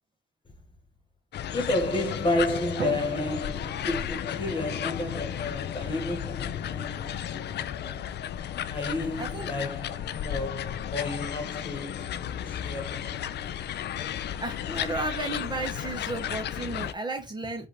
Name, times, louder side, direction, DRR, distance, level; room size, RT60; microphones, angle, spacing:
sound 1, 1.3-16.9, left 10 dB, 60° left, 0.5 m, -34 dB
voice 1, 1.5-8.4 8.7-13.5, left 2 dB, 25° left, 1.6 m, -32 dB
Drum, 2.8-4.9, right 7 dB, 50° right, 0.7 m, -40 dB
voice 2, 14.4-17.7, right 2 dB, 20° right, 1.1 m, -33 dB
4.9 x 2.7 x 3.5 m
cardioid pair, 90°, 20 cm